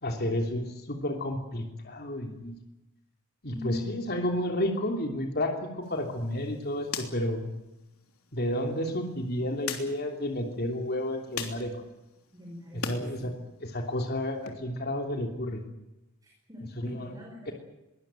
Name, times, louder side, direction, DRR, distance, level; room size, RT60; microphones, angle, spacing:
voice 1, 0.0-2.6 3.4-7.5 8.3-11.7 12.7-13.3 13.6-15.6 16.8-17.1 17.5-17.6, left 1 dB, 45° left, 3 dB, 3.2 m, -31 dB
voice 2, 3.4-4.1 12.3-13.3 16.2-17.5, left 4 dB, 15° right, -1 dB, 5.8 m, -42 dB
sound 1, 5.8-13.0 13.4-14.5, left 6 dB, 85° left, 3.3 m, -43 dB
22.5 x 19.0 x 9.0 m, 0.95 s
head